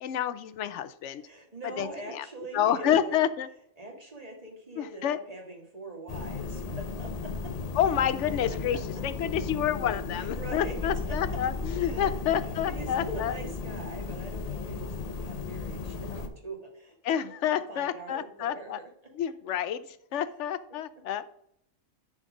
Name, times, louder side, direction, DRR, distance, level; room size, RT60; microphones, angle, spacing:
voice 1, 0.0-1.2 1.8-2.2 2.5-3.5 4.8-5.2 7.8-13.3 17.0-18.8 19.2-21.3, left 9 dB, 65° left, 14 dB, 0.8 m, -29 dB
voice 2, 1.2-3.2 3.8-7.5 8.7-8.8 10.1-11.4 11.8-12.1 12.4-17.0 17.5-19.1 20.1-20.3, right 2 dB, 30° right, 0 dB, 1.9 m, -42 dB
sound 1, 6.1-16.3, left 4 dB, 35° left, 0.7 m, -35 dB
9.9 x 3.9 x 5.1 m, 0.71 s
omnidirectional pair, 1.4 m